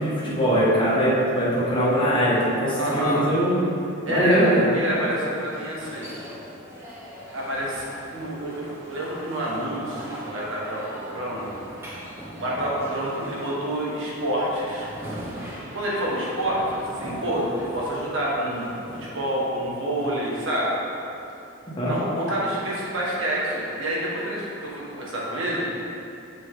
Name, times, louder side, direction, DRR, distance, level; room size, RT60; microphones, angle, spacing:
voice 1, 0.0-3.5 4.1-4.7 21.7-21.9, equal, 25° left, -8 dB, 1.6 m, -21 dB
voice 2, 2.7-3.2 4.1-6.1 7.3-7.9 8.1-11.5 12.4-14.9 15.7-20.7 21.8-25.7, right 1 dB, 65° right, -5 dB, 1.7 m, -28 dB
sound 1, 4.3-21.1, equal, 10° right, 1.1 m, -41 dB
7.7 x 6.0 x 3.9 m, 2.7 s
head